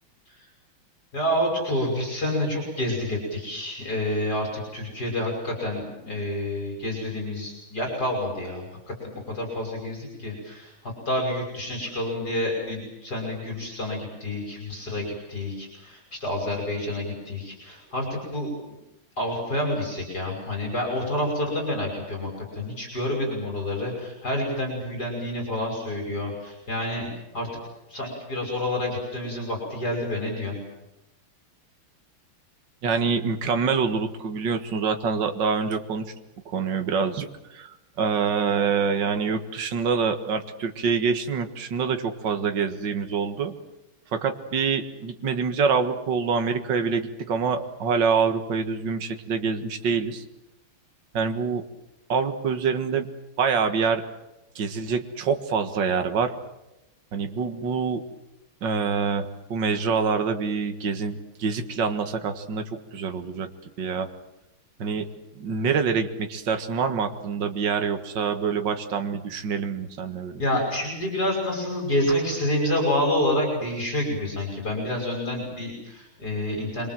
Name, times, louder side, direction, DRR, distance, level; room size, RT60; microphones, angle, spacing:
voice 1, 1.1-10.7 11.1-18.5 19.2-27.1 27.3-27.5 27.9-30.6 70.4-76.9, left 1 dB, 45° left, 1 dB, 6.5 m, -28 dB
voice 2, 32.8-36.0 36.5-37.3 37.5-37.7 38.0-43.5 44.1-50.2 51.1-51.6 52.1-53.1 53.4-54.0 54.6-56.3 57.1-58.0 58.6-62.6 62.9-63.5 63.8-64.1 64.8-65.1 65.4-70.4, right 5 dB, 55° right, 6 dB, 2.3 m, -26 dB
27.5 x 23.5 x 7.7 m, 0.94 s
omnidirectional pair, 2.4 m